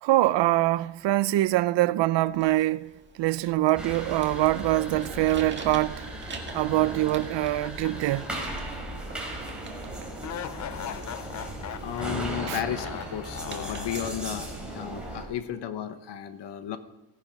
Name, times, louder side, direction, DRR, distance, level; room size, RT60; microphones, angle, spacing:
voice 1, 0.0-2.9 3.2-6.1 6.5-8.3 12.5-12.6, right 16 dB, 70° right, 0.6 m, -24 dB
sound 1, 2.3-14.1, right 4 dB, 25° right, 1.8 m, -47 dB
sound 2, 3.8-15.2, right 1 dB, ahead, 3.7 m, -37 dB
sound 3, 7.6-8.9 9.2-9.3 10.2-14.5, left 10 dB, 40° left, 0.5 m, -40 dB
voice 2, 11.8-16.8, left 9 dB, 65° left, 1.1 m, -34 dB
17.5 x 10.5 x 5.3 m
cardioid pair, 150°, 46 cm